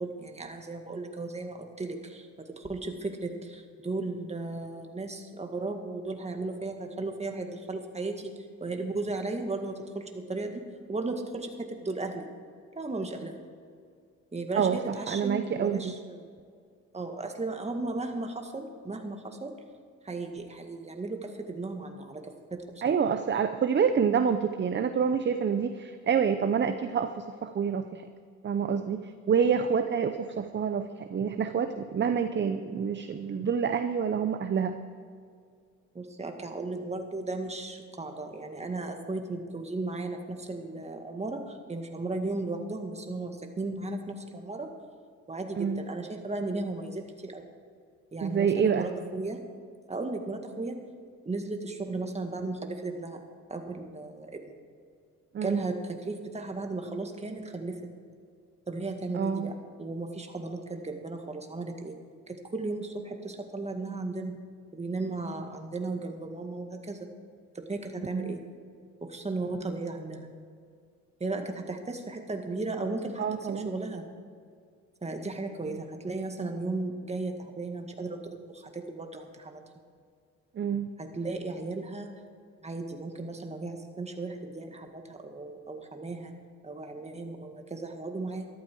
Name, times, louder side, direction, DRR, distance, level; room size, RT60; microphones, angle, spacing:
voice 1, 0.0-2.3 2.6-8.3 8.6-10.6 10.9-12.3 12.8-13.3 14.3-16.3 16.9-19.5 20.0-22.2 22.5-23.0 35.9-44.7 45.3-47.5 48.1-49.4 49.9-50.8 51.3-53.2 53.5-54.5 55.4-57.8 58.7-59.5 59.8-62.0 62.3-64.4 64.7-67.1 67.6-68.4 69.0-70.3 71.2-73.2 73.6-74.0 75.0-79.6 81.0-82.1 82.6-86.3 86.6-88.5, right 3 dB, 20° right, 4 dB, 1.9 m, -35 dB
voice 2, 14.5-15.9 22.8-28.1 28.4-34.8 45.6-45.8 48.2-48.9 55.3-55.6 59.1-59.5 68.1-68.4 73.2-73.7 80.5-80.9, right 7 dB, 35° right, 9 dB, 0.7 m, -27 dB
13.5 x 12.5 x 4.7 m, 2.2 s
cardioid pair, 90°, 30 cm